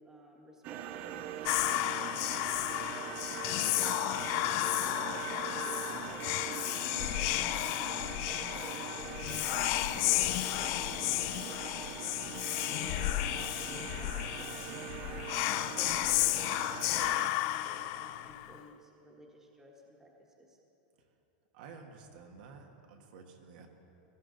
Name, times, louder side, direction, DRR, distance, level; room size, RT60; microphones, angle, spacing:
voice 1, 0.0-3.8 4.2-20.1 20.4-20.6, right 1 dB, 10° right, -1 dB, 1.4 m, -53 dB
sound 1, 0.6-17.3, right 11 dB, 35° right, 0.4 m, -42 dB
Whispering, 1.5-18.6, left 17 dB, 45° left, 0.3 m, -33 dB
voice 2, 21.5-23.7, right 5 dB, 65° right, 3 dB, 1.4 m, -51 dB
17.0 x 13.5 x 3.9 m, 3.0 s
supercardioid pair, 155°, 5 cm